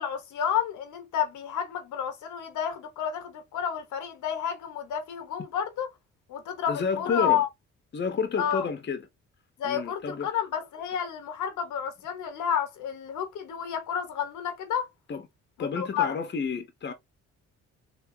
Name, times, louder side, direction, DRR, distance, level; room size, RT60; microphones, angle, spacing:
voice 1, 0.0-5.9 6.3-7.5 8.4-8.6 9.6-14.9 15.6-16.1, left 9 dB, 80° left, 1.1 m, -30 dB
voice 2, 6.7-7.4 7.9-9.1 9.6-10.3 15.1-15.2 15.6-16.9, left 5 dB, 35° left, 0.9 m, -30 dB
3.8 x 2.7 x 2.7 m
cardioid pair, 90°, 30 cm